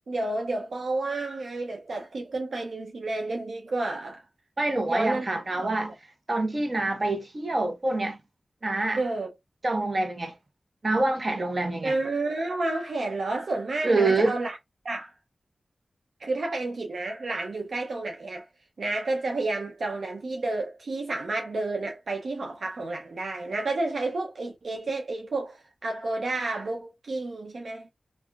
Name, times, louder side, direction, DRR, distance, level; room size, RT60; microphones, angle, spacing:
voice 1, 0.0-4.2 4.8-5.3 5.6-5.7 9.0-9.3 11.8-14.6 14.8-15.1 16.2-18.5 18.8-27.9, right 2 dB, 80° right, 0.4 m, -30 dB
voice 2, 4.6-5.9 6.3-8.2 8.6-9.0 9.6-10.3 10.8-11.9 13.8-14.4, right 2 dB, 45° right, 0.9 m, -26 dB
3.7 x 2.4 x 2.3 m
wide cardioid pair, 70°, 0 cm